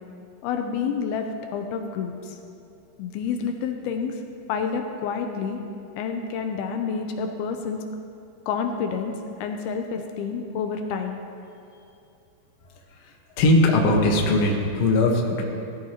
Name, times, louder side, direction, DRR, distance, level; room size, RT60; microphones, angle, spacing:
voice 1, 0.4-2.4 3.0-4.1 4.5-5.6 6.0-7.8 8.5-9.1 9.4-11.2, left 6 dB, 80° left, 5 dB, 2.5 m, -28 dB
voice 2, 13.0-15.4, left 2 dB, 65° left, 0 dB, 1.7 m, -20 dB
17.5 x 14.0 x 2.9 m, 2.7 s
omnidirectional pair, 4.7 m